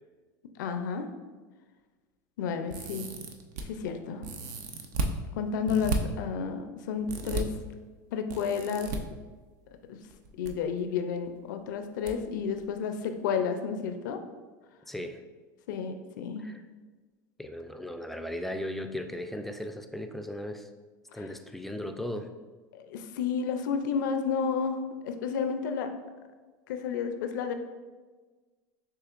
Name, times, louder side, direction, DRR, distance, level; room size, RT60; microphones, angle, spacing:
voice 1, 0.6-1.1 2.4-3.1 3.7-4.3 5.4-7.5 8.1-8.9 9.9-10.0 10.4-14.2 15.7-16.5 21.1-21.2 22.7-25.9 26.7-27.5, left 6 dB, 80° left, 7 dB, 0.4 m, -31 dB
sound 1, 2.7-3.6 4.2-5.1 5.7-6.0 7.1-7.4 8.3-9.0 10.1-10.5 10.8-10.9 12.1-12.2 12.5-12.6, right 3 dB, 75° right, 0.5 m, -33 dB
voice 2, 14.9-15.2 16.4-16.6 17.4-20.7 21.1-22.3, left 1 dB, ahead, 7 dB, 0.3 m, -37 dB
6.7 x 2.8 x 2.4 m, 1.3 s
hypercardioid pair, 100°, 10 cm